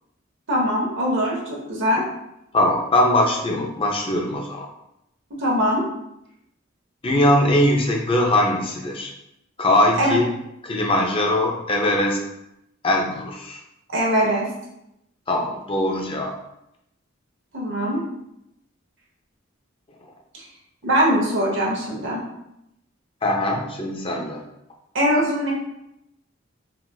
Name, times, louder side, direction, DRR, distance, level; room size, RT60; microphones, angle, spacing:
voice 1, 0.5-2.0 5.4-5.8 10.0-10.1 13.9-14.5 17.5-18.0 20.8-22.2 24.9-25.5, equal, 60° right, -3 dB, 0.9 m, -21 dB
voice 2, 2.5-4.7 7.0-9.1 9.6-10.3 10.6-12.2 12.8-13.6 15.3-16.3 20.0-20.1 23.2-24.4, left 1 dB, 25° left, 1 dB, 0.4 m, -21 dB
3.9 x 2.4 x 2.3 m, 0.83 s
head